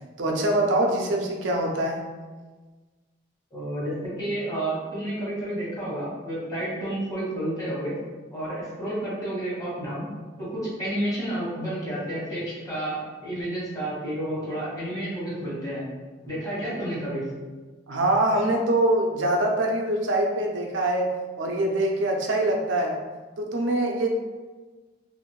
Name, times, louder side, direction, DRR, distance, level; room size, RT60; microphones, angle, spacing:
voice 1, 0.2-2.0 17.9-23.0 23.4-24.1, right 1 dB, 85° right, 1 dB, 0.5 m, -24 dB
voice 2, 3.5-7.9 8.3-10.1 10.4-15.8 16.3-17.2, right 1 dB, 20° left, -8 dB, 1.2 m, -30 dB
2.6 x 2.5 x 3.0 m, 1.3 s
head